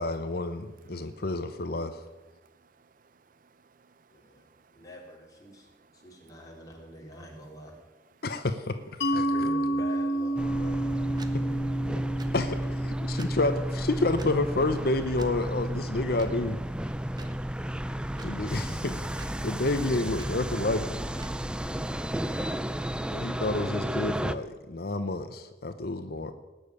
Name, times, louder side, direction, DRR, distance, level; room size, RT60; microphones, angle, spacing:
voice 1, 0.0-2.0 8.2-8.8 9.1-9.2 12.3-16.6 18.2-20.9 23.1-26.3, left 2 dB, 60° left, 0.9 m, -29 dB
voice 2, 0.8-1.2 2.4-4.8 5.5-6.2 11.3-11.4 11.9-12.3 13.0-13.2, right 4 dB, 50° right, 0.6 m, -63 dB
voice 3, 4.1-4.4 4.7-5.7 5.9-7.8 9.1-11.0 11.4-11.6, equal, 20° left, 3.8 m, -45 dB
Mallet percussion, 9.0-14.4, right 1 dB, 75° left, 1.2 m, -31 dB
sound 1, 10.4-24.3, equal, 5° right, 0.5 m, -32 dB
sound 2, 10.4-22.2, right 1 dB, 25° right, 1.3 m, -47 dB
19.0 x 7.2 x 9.7 m
head